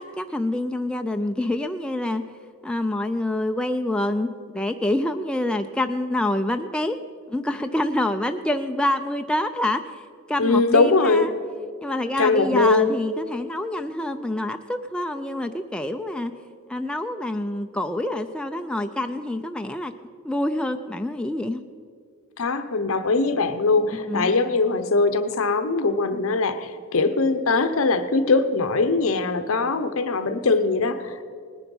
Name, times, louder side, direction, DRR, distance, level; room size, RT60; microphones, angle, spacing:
voice 1, 0.0-2.2 2.6-7.0 7.3-9.8 10.3-11.3 11.8-16.3 16.7-19.9 20.2-21.6 24.1-24.3, left 1 dB, 5° left, 5 dB, 0.4 m, -26 dB
voice 2, 10.4-11.3 12.2-12.9 22.4-31.2, left 3 dB, 65° left, 10 dB, 0.8 m, -21 dB
18.5 x 10.0 x 5.4 m, 2.1 s
head